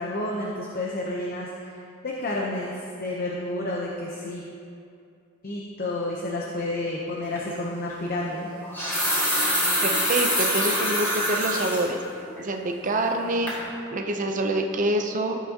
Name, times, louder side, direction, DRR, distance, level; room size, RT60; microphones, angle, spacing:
voice 1, 0.0-1.7 2.0-4.4 5.4-8.5, left 2 dB, 45° left, -2 dB, 0.8 m, -30 dB
sound 1, 7.4-7.5 8.5-11.8 12.3-12.4 12.9-13.2 13.5-13.6, equal, 10° left, 1.9 m, -25 dB
voice 2, 9.4-12.0 12.4-13.6 13.9-15.4, right 1 dB, 35° right, 4 dB, 0.7 m, -26 dB
14.0 x 6.9 x 2.9 m, 2.5 s
head